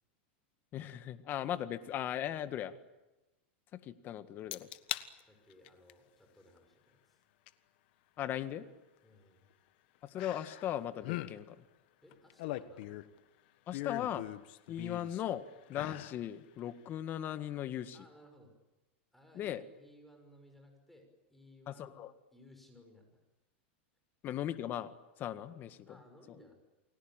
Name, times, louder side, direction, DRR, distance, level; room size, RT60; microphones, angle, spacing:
voice 1, 0.7-2.8 3.7-4.7 8.2-8.7 10.0-11.6 13.7-14.2 14.7-18.0 19.3-19.6 21.7-22.1 24.2-26.0, left 11 dB, 30° left, 11 dB, 1.7 m, -38 dB
sound 1, 4.5-5.1 5.5-5.9 7.5-7.6 10.2-10.7 11.0-11.3 12.1-13.2 13.7-15.2 15.7-16.2 16.6-16.7, left 17 dB, 60° left, 1.5 m, -40 dB
voice 2, 5.2-7.2 9.0-9.5 12.0-13.0 17.9-18.5 19.1-22.1 22.3-23.2 25.9-26.5, left 1 dB, ahead, 4 dB, 6.2 m, -60 dB
29.5 x 21.5 x 9.1 m, 1.1 s
supercardioid pair, 140°, 6 cm